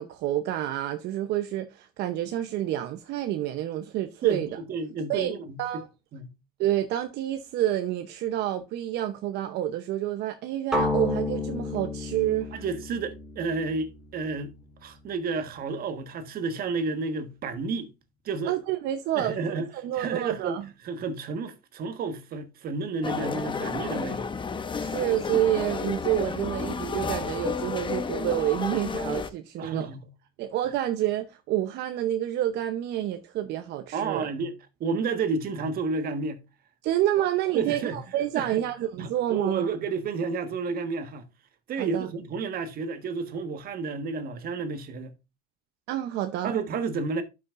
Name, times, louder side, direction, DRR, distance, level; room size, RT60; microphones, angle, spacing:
voice 1, 0.0-4.5 5.1-5.3 5.6-5.9 6.6-12.5 18.5-20.6 24.8-29.9 30.4-34.3 36.8-39.7 41.8-42.1 45.9-46.6, right 12 dB, 80° right, 0.8 m, -28 dB
voice 2, 4.2-5.6 6.1-6.2 12.5-14.5 14.8-17.9 18.2-18.5 19.1-19.7 20.0-24.3 29.6-30.1 33.9-34.5 34.8-36.4 37.5-38.0 38.3-38.6 39.0-41.2 41.7-45.1 46.4-47.2, right 4 dB, 60° right, 1.5 m, -31 dB
sound 1, 10.7-14.7, left 2 dB, 5° right, 3.5 m, -31 dB
sound 2, 23.0-29.3, left 5 dB, 30° left, 0.9 m, -31 dB
12.0 x 5.9 x 2.5 m
cardioid pair, 110°, 17 cm